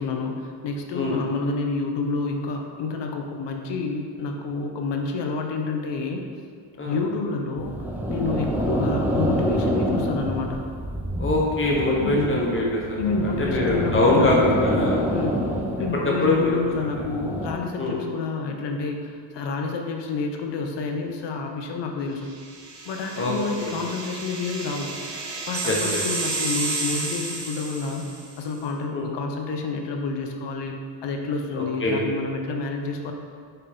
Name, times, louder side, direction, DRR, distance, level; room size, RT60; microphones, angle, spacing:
voice 1, 0.0-6.2 6.9-7.8 8.1-10.6 11.9-12.4 13.0-14.6 15.1-22.3 22.8-25.0 25.5-28.1 28.4-30.8 31.0-33.1, left 4 dB, 60° left, 3 dB, 0.8 m, -29 dB
sound 1, 7.6-17.6, equal, 5° right, 0.3 m, -27 dB
voice 2, 11.2-15.0 16.2-16.5 17.8-18.0 23.2-23.3 23.6-23.7 25.6-26.0 28.9-29.1 31.5-32.1, left 2 dB, 25° left, -3 dB, 1.1 m, -23 dB
sound 2, 22.4-28.4, right 3 dB, 35° right, 0.8 m, -31 dB
5.5 x 4.5 x 5.4 m, 2.1 s
cardioid pair, 165°, 48 cm